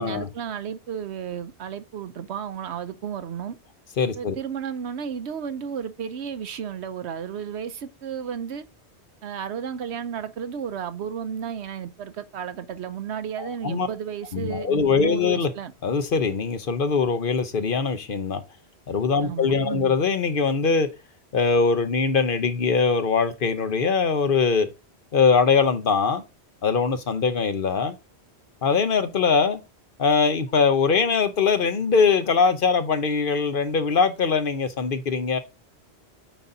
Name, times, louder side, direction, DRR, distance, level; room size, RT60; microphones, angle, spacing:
voice 1, 0.0-3.6 4.1-8.6 9.2-15.7 19.2-19.9, right 8 dB, 80° right, 1.0 m, -33 dB
voice 2, 4.0-4.3 13.4-13.9 14.3-15.5 15.8-18.4 18.9-20.9 21.3-24.7 25.1-26.2 26.6-27.9 28.6-29.6 30.0-35.4, left 5 dB, 55° left, 1.0 m, -22 dB
8.9 x 4.1 x 2.6 m
omnidirectional pair, 1.1 m